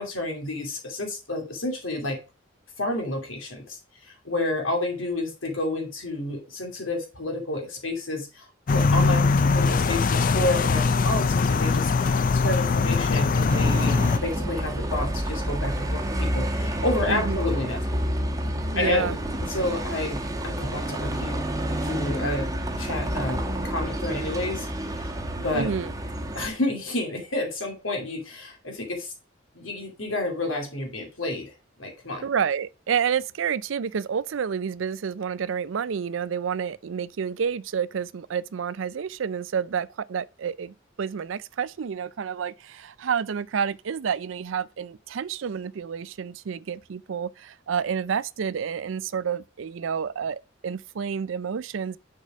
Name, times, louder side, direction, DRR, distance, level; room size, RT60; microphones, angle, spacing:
voice 1, 0.0-2.2 2.8-17.8 18.8-19.2 19.4-21.4 21.8-22.5 22.8-25.7 26.3-29.1 29.5-31.5 31.8-32.2, left 2 dB, 80° left, 2.6 m, -30 dB
sound 1, 8.7-14.2, left 4 dB, 45° left, 0.4 m, -21 dB
Bus, 13.5-26.5, right 1 dB, 20° right, 1.1 m, -29 dB
voice 2, 17.1-17.4 18.7-19.2 25.5-25.9 32.2-52.0, right 7 dB, 75° right, 0.4 m, -29 dB
6.7 x 4.8 x 4.8 m
head